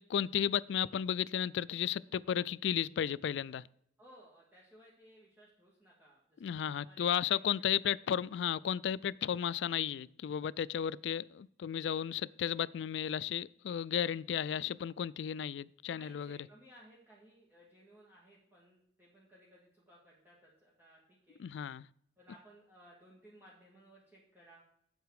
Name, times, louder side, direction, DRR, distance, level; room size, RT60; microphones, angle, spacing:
voice 1, 0.0-3.6 6.4-16.4 21.4-21.9, left 9 dB, 75° left, 0.3 m, -34 dB
voice 2, 4.0-8.1 15.9-21.4 22.2-24.6, equal, 10° right, 2.0 m, -60 dB
8.8 x 8.0 x 4.9 m
head